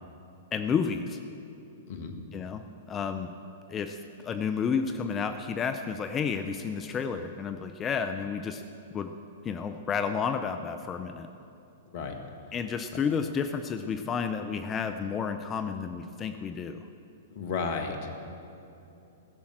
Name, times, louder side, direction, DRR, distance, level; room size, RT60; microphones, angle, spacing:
voice 1, 0.5-1.2 2.3-2.6 2.9-3.3 3.7-8.6 8.9-9.1 9.4-11.3 12.5-16.9, left 6 dB, 25° left, 8 dB, 0.5 m, -31 dB
voice 2, 17.4-18.1, left 5 dB, 50° left, 5 dB, 1.6 m, -33 dB
15.5 x 7.1 x 7.7 m, 2.8 s
figure-of-eight pair, 110°, 0 cm